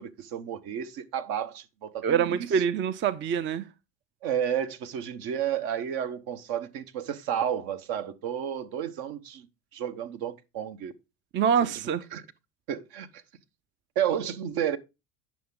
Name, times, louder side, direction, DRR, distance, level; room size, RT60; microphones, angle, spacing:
voice 1, 0.0-2.5 4.2-9.5 9.7-10.9 11.6-11.7 12.1-12.2 12.7-13.2 13.9-14.8, right 9 dB, 60° right, 1.0 m, -31 dB
voice 2, 2.0-3.7 11.3-12.0, right 7 dB, 30° right, 0.5 m, -25 dB
9.2 x 5.9 x 3.7 m
hypercardioid pair, 75°, 40 cm